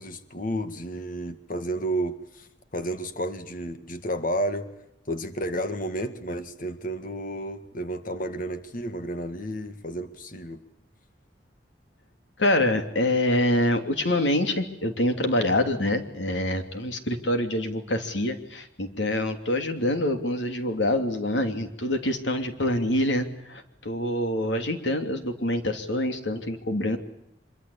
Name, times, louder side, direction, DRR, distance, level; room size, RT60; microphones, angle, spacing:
voice 1, 0.0-4.7 5.1-10.6, right 1 dB, 50° left, 9 dB, 2.0 m, -31 dB
voice 2, 12.4-27.0, left 1 dB, 85° left, 7 dB, 3.0 m, -26 dB
25.0 x 23.5 x 8.6 m, 0.80 s
head